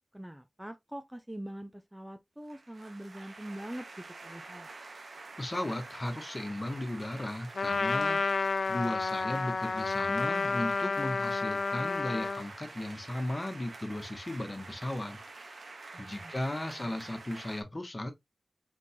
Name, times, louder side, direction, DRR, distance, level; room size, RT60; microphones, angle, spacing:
voice 1, 0.1-4.7 15.9-17.0, right 1 dB, 10° right, 0.5 m, -44 dB
sound 1, 2.4-17.6, right 3 dB, 85° right, 1.3 m, -48 dB
voice 2, 5.4-8.2 8.7-15.6 16.0-18.1, left 1 dB, 30° left, 1.2 m, -36 dB
Trumpet, 7.5-12.5, left 4 dB, 80° left, 0.4 m, -30 dB
4.5 x 4.2 x 2.7 m
wide cardioid pair, 95°, 0 cm